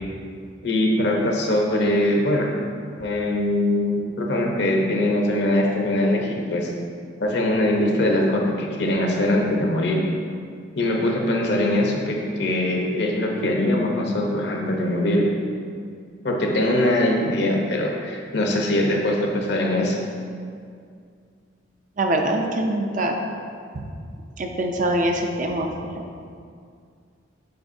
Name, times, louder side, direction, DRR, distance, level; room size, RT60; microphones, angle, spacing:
voice 1, 0.6-2.5 3.0-6.7 7.2-10.0 10.8-15.3 16.2-20.0, left 1 dB, 65° left, 0 dB, 0.9 m, -22 dB
voice 2, 22.0-23.2 24.4-26.0, right 1 dB, 45° right, 3 dB, 0.5 m, -24 dB
7.8 x 4.8 x 2.7 m, 2.2 s
head